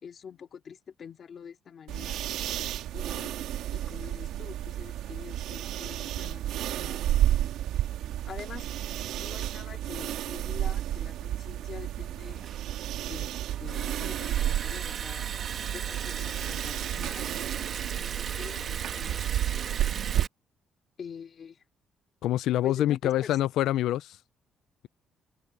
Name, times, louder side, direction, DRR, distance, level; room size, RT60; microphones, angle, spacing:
voice 1, 0.0-2.2 2.9-3.3 3.7-7.1 7.7-7.8 8.3-8.7 9.2-12.4 13.1-15.3 15.7-17.4 18.0-19.3 21.0-21.6 22.6-23.4, left 7 dB, 40° left, 2.7 m, -45 dB
sound 1, 1.9-20.2, right 12 dB, 90° right, 2.2 m, -32 dB
Liquid, 12.2-20.3, right 7 dB, 45° right, 2.2 m, -38 dB
voice 2, 22.2-24.2, left 13 dB, 85° left, 0.4 m, -26 dB
cardioid pair, 155°, 0 cm